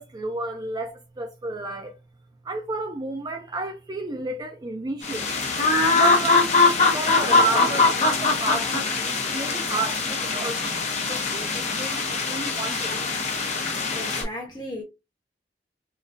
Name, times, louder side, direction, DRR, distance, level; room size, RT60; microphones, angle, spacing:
voice 1, 0.0-2.0 2.4-5.5 5.9-6.6 6.9-13.1, right 3 dB, 25° right, 0.4 m, -31 dB
sound 1, 5.0-14.2, left 3 dB, 40° left, 0.8 m, -22 dB
voice 2, 13.9-14.8, left 1 dB, 25° left, 1.2 m, -35 dB
3.7 x 2.3 x 2.6 m
head